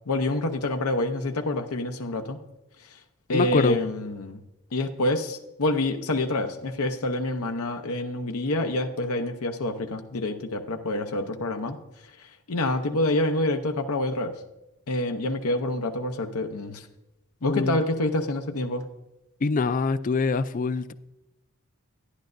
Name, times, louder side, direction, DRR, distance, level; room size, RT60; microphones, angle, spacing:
voice 1, 0.1-2.4 3.3-4.4 4.7-11.8 12.5-14.3 14.9-16.9 17.4-18.8, left 2 dB, 90° left, 5 dB, 0.7 m, -27 dB
voice 2, 3.3-3.8 17.4-17.8 19.4-20.9, left 4 dB, 40° left, 14 dB, 0.4 m, -24 dB
11.5 x 10.5 x 2.6 m, 0.95 s
head